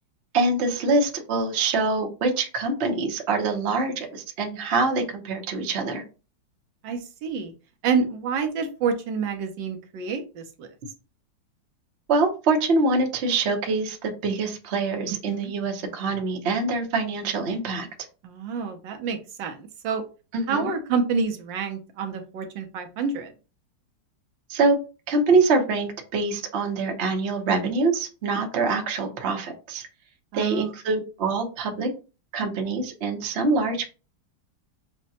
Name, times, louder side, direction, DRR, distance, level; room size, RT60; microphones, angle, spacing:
voice 1, 0.3-6.0 12.1-17.9 20.3-20.7 24.5-24.8 25.1-29.9 30.3-31.9 32.3-33.8, right 3 dB, 50° right, 2 dB, 0.8 m, -24 dB
voice 2, 6.8-7.5 7.8-10.7 15.3-15.5 18.2-20.0 20.5-23.3 30.3-30.7, right 5 dB, 80° right, 5 dB, 1.4 m, -28 dB
6.0 x 2.2 x 2.7 m, 0.33 s
omnidirectional pair, 2.0 m